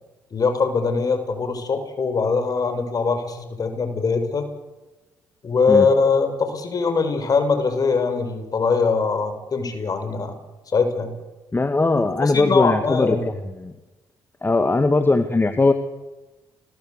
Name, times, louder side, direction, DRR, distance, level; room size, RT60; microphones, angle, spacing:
voice 1, 0.3-4.4 5.4-10.3 10.7-11.1 12.2-13.2, left 4 dB, 45° left, 8 dB, 6.2 m, -22 dB
voice 2, 11.5-13.2 13.6-13.7 14.4-15.7, left 3 dB, 25° left, 8 dB, 2.1 m, -19 dB
29.5 x 21.5 x 8.2 m, 1.1 s
hypercardioid pair, 50°, 9 cm